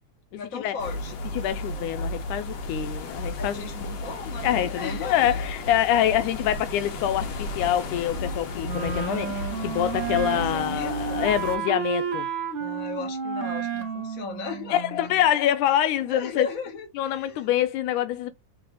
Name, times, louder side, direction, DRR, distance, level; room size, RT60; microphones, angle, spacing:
voice 1, 0.3-1.1 1.7-1.9 3.4-5.4 10.3-11.2 12.5-14.8 16.0-17.5, left 5 dB, 35° left, 1.7 m, -36 dB
sound 1, 0.8-11.6, left 2 dB, 60° left, 2.5 m, -33 dB
voice 2, 1.3-3.7 4.4-12.3 14.7-16.5 17.0-18.3, left 11 dB, 80° left, 2.1 m, -25 dB
Wind instrument woodwind instrument, 8.6-15.2, right 6 dB, 75° right, 0.6 m, -31 dB
5.8 x 3.4 x 5.3 m
omnidirectional pair, 3.6 m